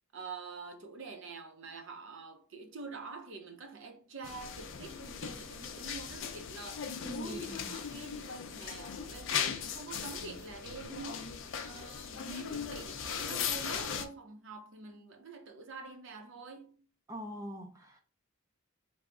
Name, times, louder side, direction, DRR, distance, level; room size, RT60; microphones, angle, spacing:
voice 1, 0.1-6.9 7.2-16.8, right 4 dB, 60° right, 0.6 m, -47 dB
sound 1, 4.2-14.1, left 7 dB, 60° left, 0.4 m, -38 dB
voice 2, 7.0-7.7 17.1-18.0, equal, 15° right, 0.4 m, -43 dB
3.4 x 2.0 x 3.6 m
head